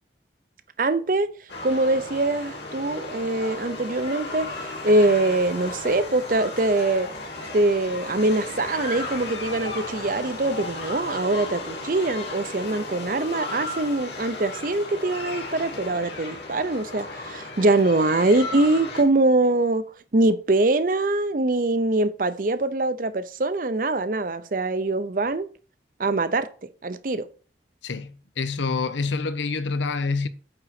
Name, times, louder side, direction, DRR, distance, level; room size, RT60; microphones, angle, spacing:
voice 1, 0.8-1.3 1.6-7.1 7.5-19.8 20.1-25.5 26.0-27.3, right 2 dB, 45° right, 0.6 m, -23 dB
sound 1, 1.5-19.0, left 2 dB, 70° left, 2.5 m, -35 dB
voice 2, 27.8-30.3, left 4 dB, 85° left, 0.8 m, -27 dB
8.9 x 3.9 x 5.8 m
head